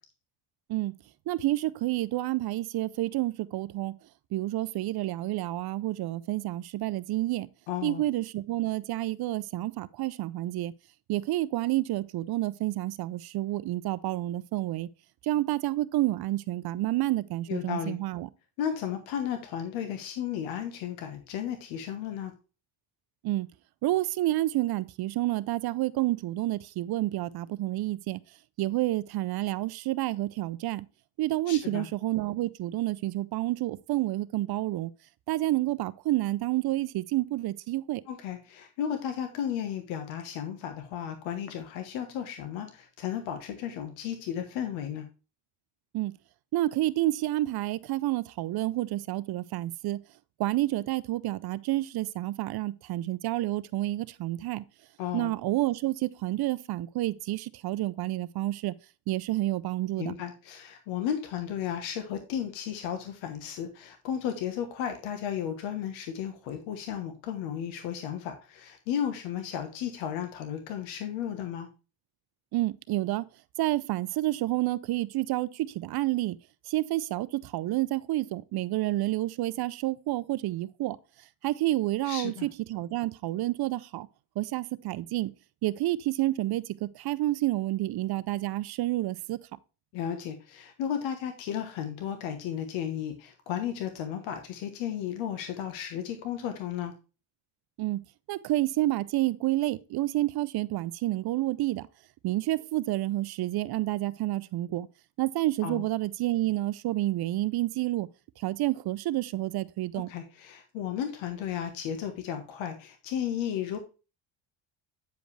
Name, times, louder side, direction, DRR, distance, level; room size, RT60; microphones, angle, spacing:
voice 1, 1.3-4.0 4.3-7.5 7.8-10.7 11.1-14.9 15.2-18.3 23.2-23.5 23.8-28.2 28.6-30.9 31.2-34.9 35.3-38.0 45.9-46.1 46.5-50.0 50.4-54.6 55.1-58.7 59.1-60.1 72.5-73.3 73.6-76.4 76.7-81.0 81.4-84.1 84.4-85.3 85.6-89.4 97.8-98.0 98.3-101.9 102.2-104.9 105.2-108.1 108.4-110.1, right 16 dB, 55° right, 0.6 m, -29 dB
voice 2, 7.7-8.0 17.5-18.0 18.6-22.3 31.5-31.9 38.1-45.1 55.0-55.3 60.0-71.7 82.0-82.5 89.9-96.9 105.6-105.8 110.1-113.8, left 9 dB, 80° left, 1.3 m, -34 dB
9.2 x 5.1 x 3.2 m
cardioid pair, 95°, 46 cm